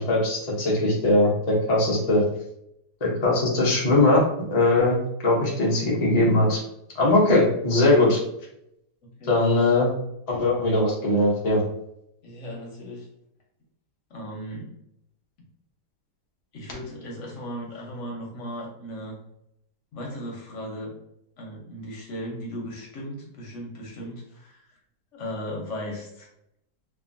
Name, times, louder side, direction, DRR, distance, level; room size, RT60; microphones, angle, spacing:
voice 1, 0.0-2.2 3.0-4.2 4.5-5.0 5.2-6.6 6.9-8.2 9.3-9.9 10.3-11.6, left 2 dB, 80° left, -3 dB, 0.3 m, -20 dB
voice 2, 9.0-9.6 12.2-13.1 14.1-14.7 16.5-19.2 19.9-20.9 21.4-24.8 25.1-26.3, equal, 60° left, -2 dB, 0.8 m, -37 dB
2.9 x 2.4 x 2.5 m, 0.79 s
omnidirectional pair, 1.8 m